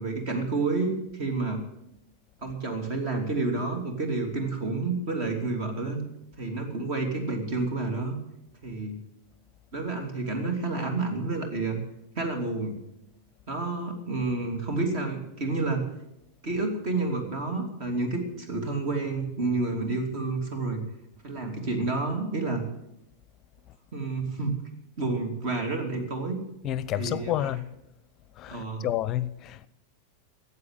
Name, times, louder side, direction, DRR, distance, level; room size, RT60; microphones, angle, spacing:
voice 1, 0.0-1.6 2.4-6.0 6.4-8.1 8.6-9.0 9.7-11.8 12.1-12.7 13.5-15.8 16.4-20.8 21.2-22.7 23.9-24.6 25.0-26.4 27.0-27.5 28.5-28.8, right 3 dB, 45° right, 2.9 m, -29 dB
voice 2, 26.6-27.6 28.4-29.7, left 13 dB, 35° left, 0.7 m, -30 dB
14.5 x 8.2 x 9.0 m
figure-of-eight pair, 90°, 0 cm